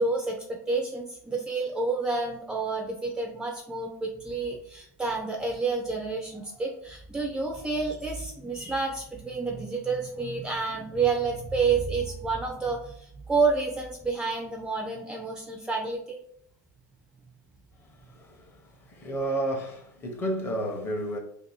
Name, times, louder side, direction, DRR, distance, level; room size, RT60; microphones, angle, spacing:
voice 1, 0.0-16.2, right 4 dB, 10° right, 0.4 m, -29 dB
voice 2, 17.8-21.2, right 1 dB, 25° left, 0.7 m, -32 dB
2.7 x 2.6 x 4.1 m
supercardioid pair, 135°, 9 cm